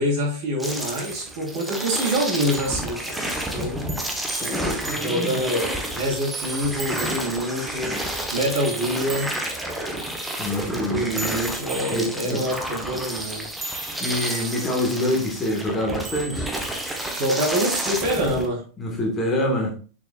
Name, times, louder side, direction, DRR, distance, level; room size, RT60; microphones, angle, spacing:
voice 1, 0.0-3.8 4.9-8.0 8.3-9.3 10.6-13.5 17.1-18.6, equal, 50° right, -3 dB, 3.6 m, -26 dB
sound 1, 0.6-18.5, right 1 dB, 5° right, 1.2 m, -30 dB
sound 2, 1.0-5.8 6.3-10.1 11.0-15.5 16.0-17.2, right 4 dB, 20° right, 0.9 m, -38 dB
voice 2, 4.4-5.4 10.4-11.1 11.9-12.4 14.0-16.5 18.8-19.8, left 1 dB, 20° left, 1 dB, 1.7 m, -26 dB
6.7 x 5.9 x 2.4 m, 0.38 s
figure-of-eight pair, 90°, 0 cm